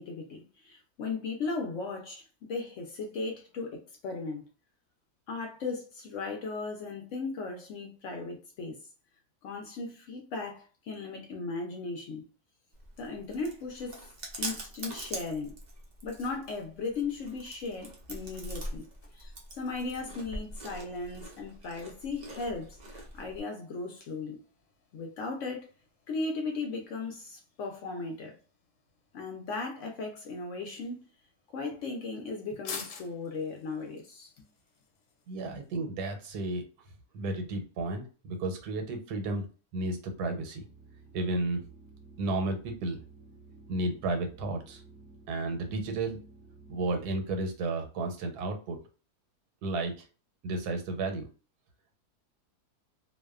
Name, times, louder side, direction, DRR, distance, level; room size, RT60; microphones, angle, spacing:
voice 1, 0.0-4.5 5.3-8.8 9.4-12.2 13.0-14.0 14.4-15.6 16.0-18.9 19.1-24.4 24.9-25.7 26.1-28.4 29.1-31.0 31.5-34.3, left 3 dB, 65° left, 0.8 m, -37 dB
Chewing mastication, 12.7-23.4, right 1 dB, 70° right, 0.4 m, -43 dB
sound 1, 16.2-35.8, left 5 dB, 85° left, 1.1 m, -53 dB
voice 2, 35.3-36.6 37.1-39.5 39.7-40.6 41.1-41.7 42.2-43.0 43.7-44.8 45.3-46.2 46.7-48.8 49.6-50.0 50.4-51.2, right 2 dB, 85° right, 1.2 m, -32 dB
sound 2, 40.5-47.4, right 3 dB, 15° right, 0.7 m, -53 dB
2.6 x 2.1 x 2.3 m
omnidirectional pair, 1.6 m